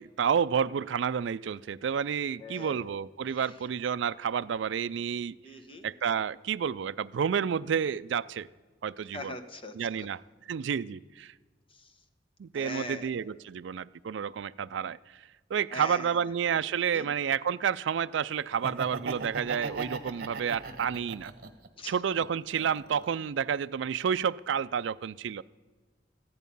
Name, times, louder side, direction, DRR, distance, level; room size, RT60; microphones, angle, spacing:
voice 1, 0.0-5.4 5.8-8.5 8.8-9.3 9.8-10.2 10.5-11.3 12.4-15.0 15.5-21.3 21.9-25.4, right 7 dB, 70° right, 16 dB, 0.4 m, -30 dB
voice 2, 2.4-2.9 3.2-3.5 5.4-5.9 9.1-9.9 11.7-11.9 12.5-13.1 15.7-16.3 16.9-17.1 21.8-21.9, left 2 dB, 30° left, 6 dB, 1.1 m, -42 dB
Laughter, 18.5-21.7 22.1-23.2, right 4 dB, 50° right, 1.2 m, -38 dB
14.5 x 10.5 x 5.4 m, 1.4 s
head